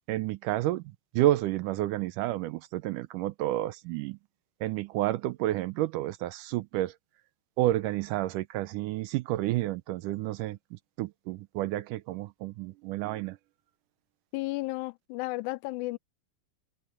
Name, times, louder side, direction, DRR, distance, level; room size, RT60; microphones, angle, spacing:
voice 1, 0.1-0.8 1.1-4.2 4.6-7.0 7.6-13.4, right 15 dB, 80° right, 2.0 m, -30 dB
voice 2, 14.3-16.0, left 22 dB, 85° left, 1.7 m, -33 dB
omnidirectional pair, 4.1 m